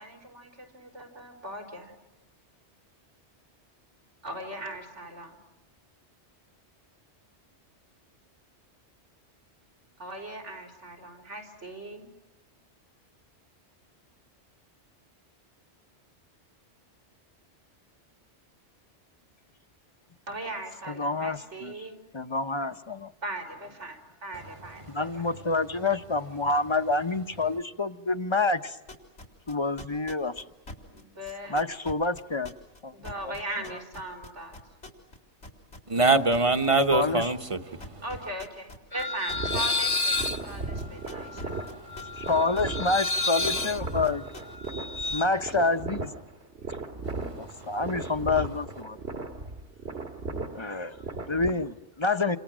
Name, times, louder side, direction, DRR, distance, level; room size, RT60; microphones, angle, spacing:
voice 1, 0.0-1.9 4.2-5.4 10.0-12.1 20.3-22.0 23.2-25.1 30.9-31.6 32.9-34.6 38.0-40.2 40.4-41.6, right 1 dB, 85° right, 5.1 m, -39 dB
voice 2, 21.0-21.7 22.1-23.1 24.9-28.8 29.5-30.4 31.5-32.5 32.8-32.9 33.2-33.3 36.9-37.3 42.2-44.2 45.1-46.1 47.1-49.0 50.5-52.4, left 3 dB, 25° left, 0.9 m, -28 dB
sound 1, 28.9-35.2 35.4-36.7 36.9-37.5 37.8-42.3 42.6-44.7, left 2 dB, 90° left, 4.3 m, -43 dB
voice 3, 35.9-38.0 40.5-42.3 45.0-45.2 47.0-47.8, right 3 dB, 30° right, 1.2 m, -27 dB
sound 2, 38.9-45.2, left 3 dB, 50° left, 1.3 m, -31 dB
sound 3, 39.3-51.5, right 3 dB, 65° right, 2.4 m, -37 dB
29.5 x 27.0 x 6.3 m
omnidirectional pair, 1.2 m